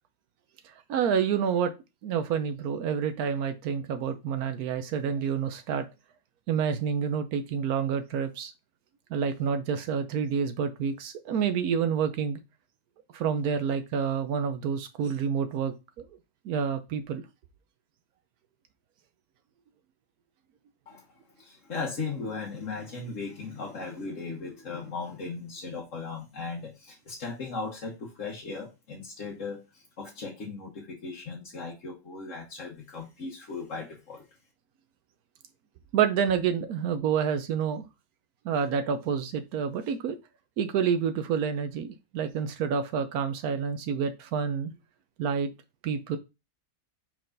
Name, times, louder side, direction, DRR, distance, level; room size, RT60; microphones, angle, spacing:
voice 1, 0.6-1.7 2.0-5.9 6.5-8.5 9.1-12.4 13.1-15.7 16.4-17.2 35.9-37.9 38.4-40.2 40.6-44.7 45.2-45.5 45.8-46.2, right 7 dB, 85° right, 1.2 m, -28 dB
voice 2, 21.4-34.2, left 4 dB, 60° left, 1.6 m, -37 dB
5.9 x 4.7 x 3.9 m
omnidirectional pair, 1.5 m